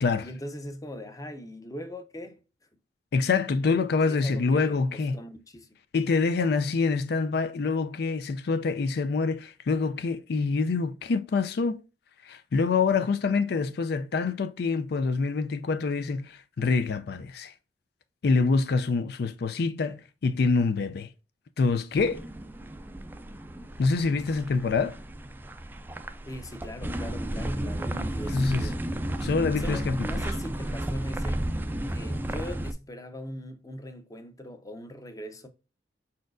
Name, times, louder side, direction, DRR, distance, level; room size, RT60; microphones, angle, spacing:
voice 1, 0.2-2.4 4.1-5.7 26.3-28.8 29.6-31.5 31.9-35.5, left 1 dB, 20° left, 0.7 m, -40 dB
voice 2, 3.1-5.2 5.9-11.8 12.2-17.5 18.2-21.1 21.6-22.2 23.8-25.0 28.3-28.7 29.2-30.1, left 4 dB, 65° left, 0.4 m, -26 dB
sound 1, 22.0-32.7, right 1 dB, 10° right, 0.3 m, -33 dB
4.7 x 4.3 x 2.5 m
head